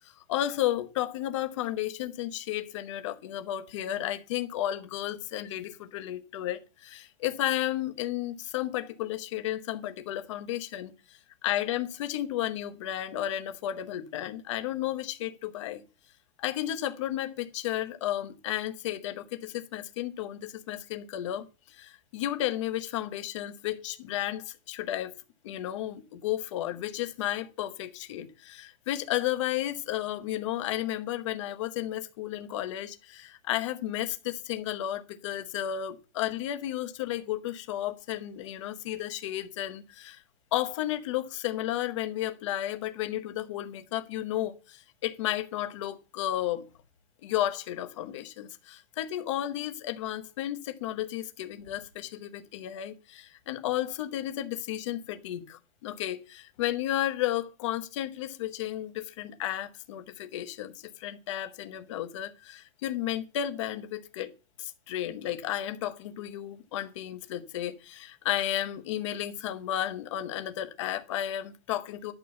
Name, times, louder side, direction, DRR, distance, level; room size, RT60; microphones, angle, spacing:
voice 1, 0.3-10.9 11.4-15.8 16.4-25.1 25.4-28.3 28.6-40.2 40.5-46.7 47.2-64.3 64.6-72.1, left 13 dB, 25° left, 0.9 m, -33 dB
11.5 x 6.1 x 6.9 m
hypercardioid pair, 180°, 38 cm